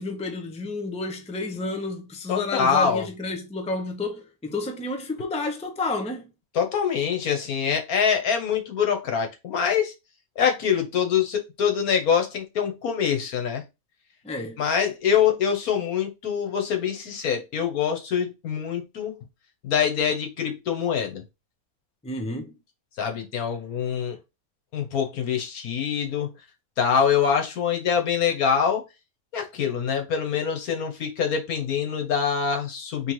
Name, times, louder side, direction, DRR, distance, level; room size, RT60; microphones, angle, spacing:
voice 1, 0.0-6.3 14.2-14.6 22.0-22.5, left 2 dB, 5° left, 0.5 m, -30 dB
voice 2, 2.3-3.1 6.5-9.9 10.4-13.6 14.6-19.1 19.6-21.2 23.0-24.2 24.7-26.3 26.8-28.8 29.3-33.1, left 7 dB, 80° left, 1.6 m, -24 dB
4.4 x 3.4 x 3.1 m
omnidirectional pair, 1.5 m